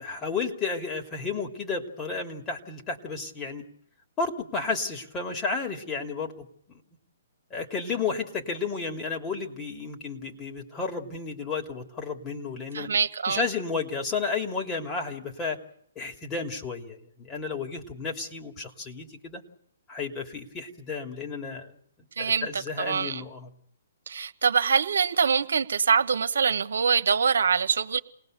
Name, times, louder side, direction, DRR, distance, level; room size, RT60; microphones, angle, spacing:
voice 1, 0.0-3.6 4.2-6.8 7.5-12.9 13.3-15.6 15.9-19.4 19.9-21.8 22.2-23.5, left 4 dB, 20° left, 3.1 m, -32 dB
voice 2, 12.7-13.4 22.2-23.2 24.1-28.0, right 6 dB, 80° right, 1.2 m, -24 dB
28.5 x 19.5 x 6.8 m
hypercardioid pair, 140°, 0 cm